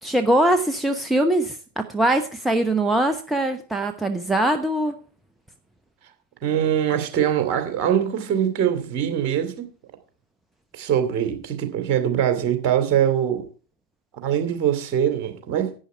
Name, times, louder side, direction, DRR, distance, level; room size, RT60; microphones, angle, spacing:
voice 1, 0.0-4.9, right 1 dB, 5° right, 6 dB, 0.9 m, -22 dB
voice 2, 6.4-9.7 10.7-13.4 14.2-15.7, right 9 dB, 40° right, 7 dB, 2.7 m, -22 dB
11.5 x 9.4 x 4.5 m, 0.37 s
figure-of-eight pair, 90°, 0 cm